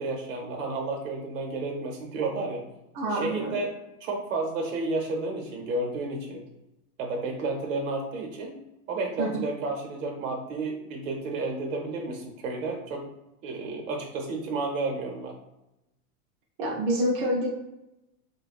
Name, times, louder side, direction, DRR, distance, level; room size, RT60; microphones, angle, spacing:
voice 1, 0.0-2.6 3.1-3.7 4.0-6.4 7.0-8.6 8.9-13.0 13.4-15.3, right 3 dB, 65° right, 2 dB, 0.8 m, -31 dB
voice 2, 2.9-3.6 9.2-9.4 16.6-17.5, right 1 dB, 40° right, -3 dB, 0.4 m, -27 dB
2.7 x 2.2 x 2.4 m, 0.91 s
supercardioid pair, 155°, 43 cm